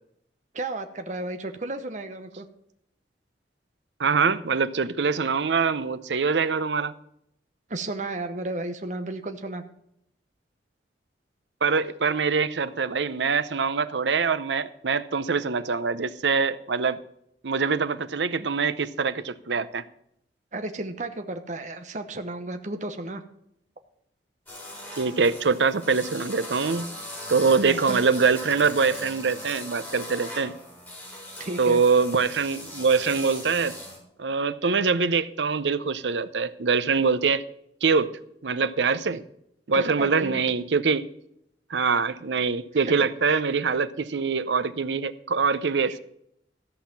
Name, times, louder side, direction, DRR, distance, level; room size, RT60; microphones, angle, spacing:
voice 1, 0.5-2.4 7.7-9.6 18.4-18.5 20.5-23.2 27.6-28.0 31.4-31.8 39.1-39.2 39.7-40.4 42.8-42.9 43.3-43.4 45.9-46.0, right 2 dB, 45° right, 0.9 m, -33 dB
voice 2, 4.0-6.9 11.6-17.0 17.4-19.8 25.0-26.9 27.3-30.5 31.6-33.8 34.2-37.4 37.8-39.2 39.7-41.1 41.7-46.0, right 5 dB, 85° right, 0.7 m, -24 dB
sound 1, 24.5-34.0, left 1 dB, 10° left, 4.5 m, -39 dB
14.0 x 5.7 x 7.1 m
head